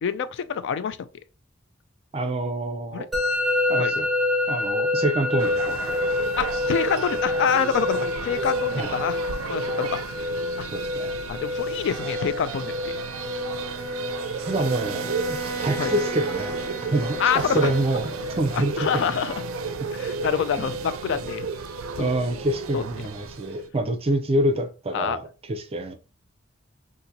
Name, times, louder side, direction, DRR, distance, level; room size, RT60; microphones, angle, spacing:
voice 1, 0.0-1.0 2.9-3.1 3.8-3.9 6.4-9.2 9.4-10.0 10.6-10.7 11.3-13.0 15.8-15.9 17.2-17.7 18.5-19.3 19.9-21.5 22.0-22.1 22.7-22.8 24.9-25.2, left 7 dB, 60° left, 0.3 m, -26 dB
voice 2, 2.1-3.1 3.7-4.1 4.5-6.2 8.7-8.9 10.6-11.2 14.4-16.6 16.9-19.1 20.6-20.7 22.0-25.9, right 1 dB, 30° right, 0.5 m, -27 dB
Musical instrument, 3.1-22.0, left 2 dB, ahead, 0.8 m, -29 dB
sound 1, 5.4-23.7, right 6 dB, 85° right, 0.4 m, -34 dB
Bowed string instrument, 12.9-18.2, right 3 dB, 30° left, 1.2 m, -37 dB
2.8 x 2.6 x 3.9 m
head